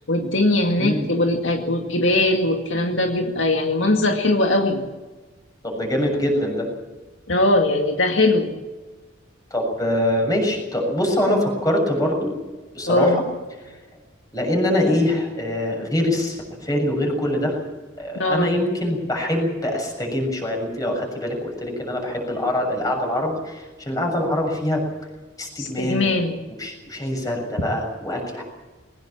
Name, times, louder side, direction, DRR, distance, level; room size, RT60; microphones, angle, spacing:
voice 1, 0.1-4.8 7.3-8.5 12.9-13.2 18.2-18.6 25.6-26.4, left 2 dB, 75° left, 3 dB, 2.1 m, -20 dB
voice 2, 0.8-1.2 5.6-6.7 9.5-12.3 12.7-13.2 14.3-17.6 18.0-24.8 25.4-26.1 26.6-28.4, left 1 dB, 20° left, 2 dB, 6.9 m, -24 dB
21.5 x 19.5 x 7.3 m, 1.2 s
head